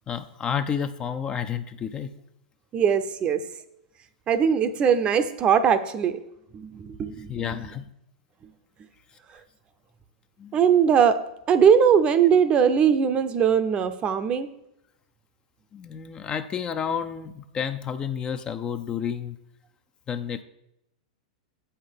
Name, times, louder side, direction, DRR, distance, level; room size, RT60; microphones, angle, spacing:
voice 1, 0.1-2.2 7.3-7.9 10.4-10.6 15.7-19.4 20.1-20.4, left 8 dB, 25° left, 10 dB, 0.5 m, -30 dB
voice 2, 2.7-3.4 4.3-6.2 6.5-7.6 10.5-11.2 11.5-14.5, right 7 dB, 30° right, 11 dB, 0.6 m, -20 dB
7.6 x 5.7 x 5.2 m, 0.82 s
hypercardioid pair, 105°, 4 cm